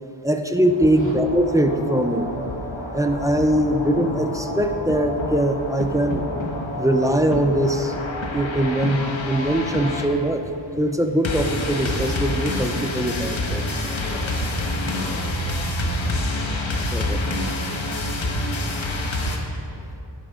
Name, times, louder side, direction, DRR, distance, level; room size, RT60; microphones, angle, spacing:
voice 1, 0.2-2.3 2.9-6.4 6.8-8.0 8.3-10.4 10.8-13.6 16.9-17.2, right 1 dB, 5° right, 5 dB, 0.8 m, -21 dB
sound 1, 0.6-19.4, left 1 dB, 75° left, 1.6 m, -28 dB
voice 2, 13.8-14.4 14.8-15.7 19.7-19.9, left 3 dB, 25° left, -4 dB, 2.7 m, -40 dB
17.0 x 10.0 x 3.8 m, 2.9 s
wide cardioid pair, 85°, 47 cm